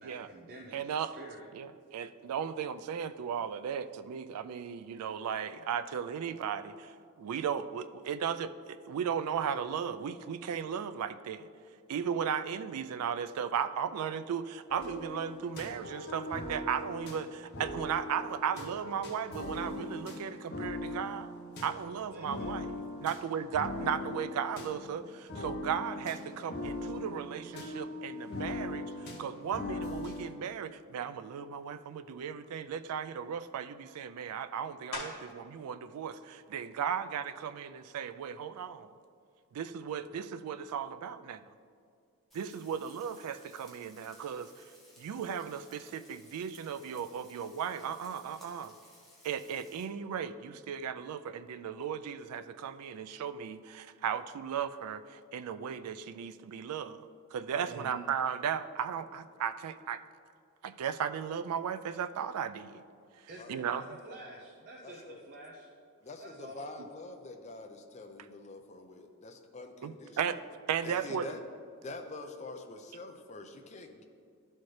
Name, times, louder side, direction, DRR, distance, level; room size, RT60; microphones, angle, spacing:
voice 1, 0.0-1.5 22.1-22.7 57.7-58.0 63.3-65.7 66.2-66.7 71.1-71.4, right 1 dB, 45° right, -1 dB, 0.6 m, -48 dB
voice 2, 0.7-1.2 1.5-11.5 11.9-21.3 21.6-22.7 23.0-38.9 39.5-41.4 42.3-44.5 45.0-48.8 49.2-60.0 60.6-62.8 63.5-63.8 69.8-70.4 70.7-71.3, right 7 dB, 85° right, 12 dB, 0.3 m, -36 dB
sound 1, 14.7-30.3, left 2 dB, 45° left, 0.8 m, -40 dB
sound 2, 34.9-35.5 36.1-40.5 41.0-46.2 46.5-52.1, left 2 dB, 80° left, 1.7 m, -52 dB
Frying (food), 42.3-49.8, left 1 dB, ahead, 0.9 m, -59 dB
voice 3, 64.8-65.2 66.0-70.4 70.8-71.4 71.8-74.0, left 2 dB, 30° left, 5 dB, 0.5 m, -46 dB
11.5 x 4.3 x 3.2 m, 2.2 s
head